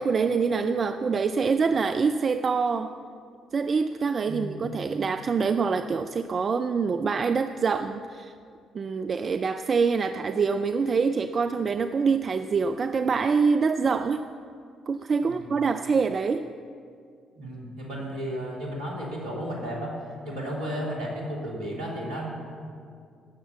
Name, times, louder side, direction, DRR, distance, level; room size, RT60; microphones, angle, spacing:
voice 1, 0.0-2.9 3.5-8.3 8.7-14.2 14.9-16.5, right 5 dB, 45° right, 9 dB, 0.4 m, -25 dB
voice 2, 4.3-4.8 15.2-15.6 17.4-19.9 20.2-22.3, equal, 75° right, -3 dB, 3.0 m, -33 dB
17.5 x 7.3 x 7.0 m, 2.3 s
hypercardioid pair, 45°, 0 cm